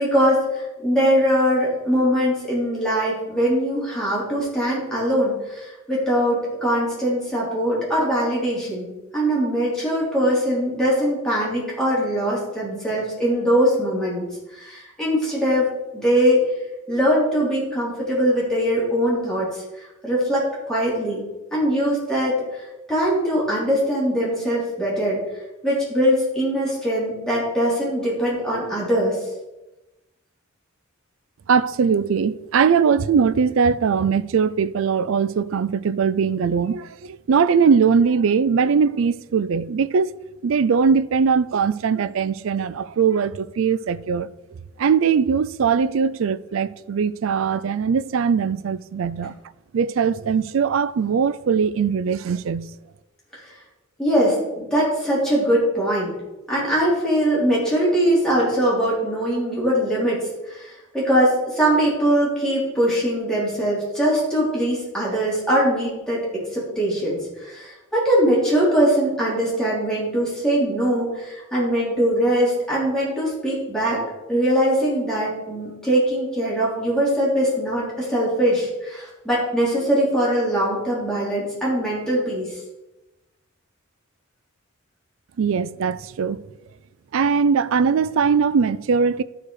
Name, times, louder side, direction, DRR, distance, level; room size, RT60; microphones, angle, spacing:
voice 1, 0.0-14.2 14.5-15.7 15.9-16.4 16.9-21.2 21.5-25.2 25.6-29.2 53.5-53.6 54.0-56.1 56.5-74.0 74.3-82.6, equal, 5° left, 3.6 m, -22 dB
voice 2, 31.5-40.1 40.4-44.3 44.8-49.3 49.7-52.7 85.4-86.4 87.1-89.2, right 6 dB, 65° right, 0.4 m, -20 dB
12.5 x 4.7 x 4.8 m
head